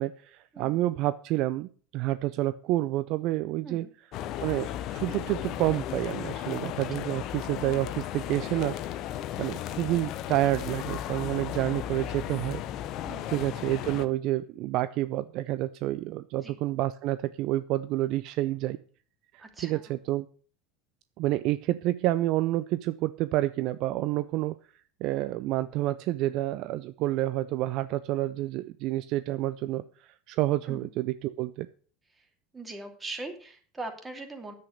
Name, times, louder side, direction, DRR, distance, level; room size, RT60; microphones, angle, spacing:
voice 1, 0.0-3.9 4.4-8.8 9.4-12.6 13.3-18.8 19.3-20.3 21.2-24.6 25.0-31.7, right 15 dB, 55° right, 14 dB, 0.5 m, -29 dB
voice 2, 3.6-3.9 6.9-7.0 9.9-10.2 13.0-13.3 16.4-16.6 19.4-20.0 30.7-30.9 32.1-32.3 32.5-34.5, right 2 dB, 15° right, 5 dB, 2.8 m, -41 dB
sound 1, 4.1-14.1, left 11 dB, 50° left, 0.8 m, -35 dB
10.0 x 8.1 x 6.6 m, 0.42 s
hypercardioid pair, 75°, 0 cm